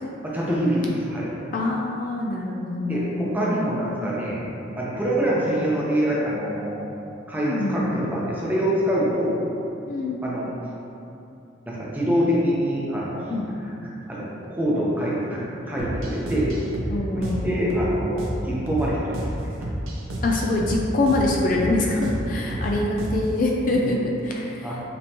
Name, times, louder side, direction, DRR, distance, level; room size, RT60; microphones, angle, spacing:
voice 1, 0.2-1.3 2.9-4.5 4.8-6.9 7.3-9.5 10.2-10.5 11.7-16.5 17.1-19.5 21.8-22.1 23.7-23.9 24.6-24.8, equal, 10° right, -6 dB, 0.6 m, -25 dB
voice 2, 1.5-3.6 7.4-7.9 9.9-10.2 13.3-13.5 16.9-17.5 20.2-24.9, left 2 dB, 45° left, -1 dB, 0.3 m, -25 dB
sound 1, 15.8-23.4, equal, 90° right, 0.6 m, -30 dB
5.2 x 2.9 x 2.9 m, 2.8 s
head